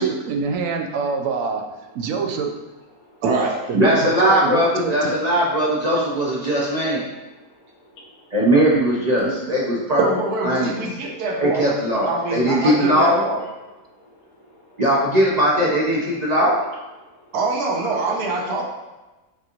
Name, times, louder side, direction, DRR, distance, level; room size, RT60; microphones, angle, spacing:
voice 1, 0.0-1.6 1.9-2.5 3.2-5.2 9.2-9.3, right 5 dB, 70° right, 4 dB, 0.9 m, -25 dB
voice 2, 3.2-3.5 10.0-11.7 12.0-13.4 17.3-18.6, right 3 dB, 85° right, 0 dB, 1.3 m, -24 dB
voice 3, 3.7-7.0 8.3-10.0 10.4-10.8 11.4-13.2 14.8-16.6, equal, 50° right, -5 dB, 0.4 m, -19 dB
voice 4, 7.3-8.3 13.9-14.8 16.1-16.2 17.0-17.3, left 1 dB, 75° left, -2 dB, 1.3 m, -52 dB
6.0 x 2.9 x 2.5 m, 1.1 s
omnidirectional pair, 1.6 m